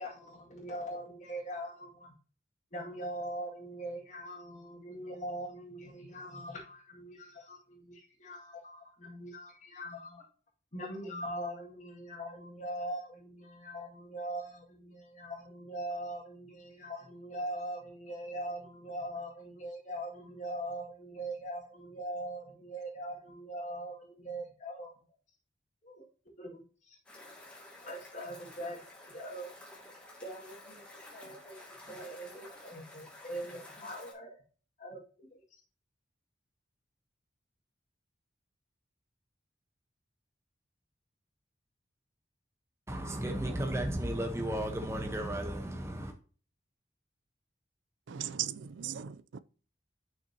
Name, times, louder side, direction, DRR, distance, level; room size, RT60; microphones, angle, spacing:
voice 1, 0.0-2.1 2.7-10.3 10.7-24.9 25.8-26.1 26.4-27.0 27.8-29.5 30.2-30.8 31.1-31.6 31.9-34.4 34.8-35.6, right 1 dB, 40° left, 2.0 m, -42 dB
sound 1, 27.1-34.1, left 1 dB, 5° left, 2.0 m, -52 dB
voice 2, 42.9-46.1, right 1 dB, 15° right, 0.9 m, -34 dB
voice 3, 48.1-49.1 49.3-49.4, right 10 dB, 85° right, 0.4 m, -37 dB
9.3 x 5.7 x 2.8 m
head